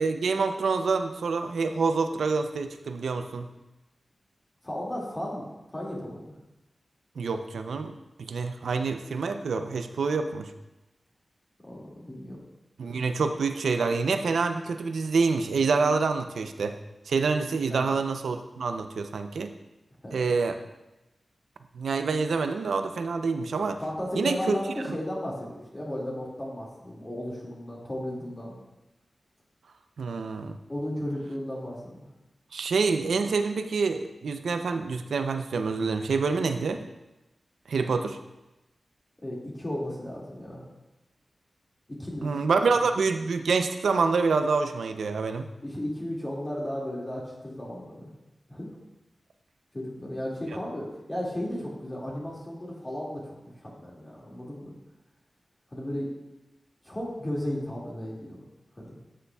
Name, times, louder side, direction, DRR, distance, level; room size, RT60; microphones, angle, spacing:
voice 1, 0.0-3.5 7.2-10.5 12.8-16.8 17.1-19.5 20.1-20.6 21.7-23.8 24.1-24.6 30.0-30.6 32.5-36.8 37.7-38.2 42.2-45.5, right 4 dB, 90° right, 7 dB, 0.5 m, -27 dB
voice 2, 4.6-6.3 11.6-12.4 17.7-17.9 20.0-20.2 23.8-28.6 30.7-32.1 39.2-40.6 41.9-42.3 45.6-48.1 48.5-48.7 49.7-54.8 55.7-56.1 56.8-58.4 58.8-59.0, left 1 dB, 30° left, -5 dB, 2.0 m, -34 dB
11.0 x 6.8 x 2.3 m, 0.99 s
cardioid pair, 55°, 0 cm